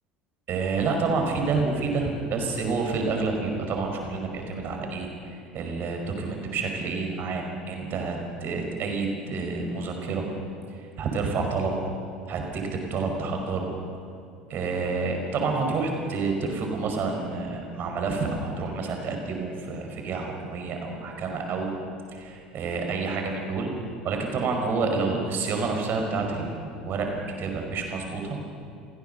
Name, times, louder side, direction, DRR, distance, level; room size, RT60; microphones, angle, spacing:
voice 1, 0.5-10.3 11.0-11.7 12.3-13.7 14.5-21.7 22.1-23.7 24.0-27.1 27.4-28.4, right 4 dB, 45° right, 3 dB, 5.2 m, -29 dB
29.0 x 17.0 x 6.8 m, 2.4 s
figure-of-eight pair, 70°, 5 cm